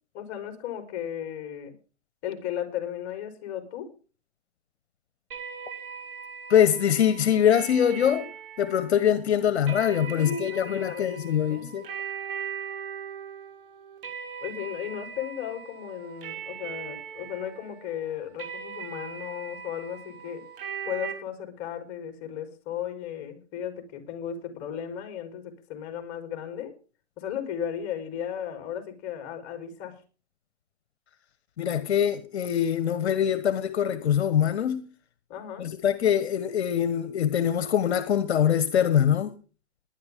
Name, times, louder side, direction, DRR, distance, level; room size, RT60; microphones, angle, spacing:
voice 1, 0.1-1.7 2.2-3.9 10.1-11.7 14.4-20.4 20.8-26.7 27.2-30.0 35.3-35.7, left 9 dB, 30° left, 4.2 m, -35 dB
sound 1, 5.3-21.1, right 7 dB, 55° right, 6.0 m, -40 dB
voice 2, 6.5-8.3 8.6-11.9 31.6-34.8 35.6-39.3, left 9 dB, 70° left, 1.4 m, -23 dB
20.0 x 11.0 x 3.7 m
hypercardioid pair, 135°, 33 cm